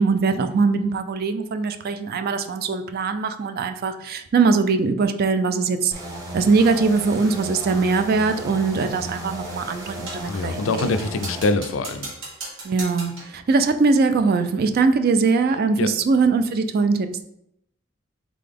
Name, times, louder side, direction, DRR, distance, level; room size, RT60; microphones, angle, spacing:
voice 1, 0.0-5.9 6.3-11.0 12.6-17.2, right 4 dB, 50° right, 9 dB, 0.3 m, -21 dB
sound 1, 5.9-11.4, right 1 dB, 20° right, 0.9 m, -35 dB
sound 2, 10.1-10.3 10.8-13.4, right 2 dB, 75° right, 1.4 m, -37 dB
voice 2, 10.3-12.1 15.8-15.9, left 3 dB, 70° left, 11 dB, 0.4 m, -24 dB
3.8 x 3.7 x 3.4 m, 0.77 s
head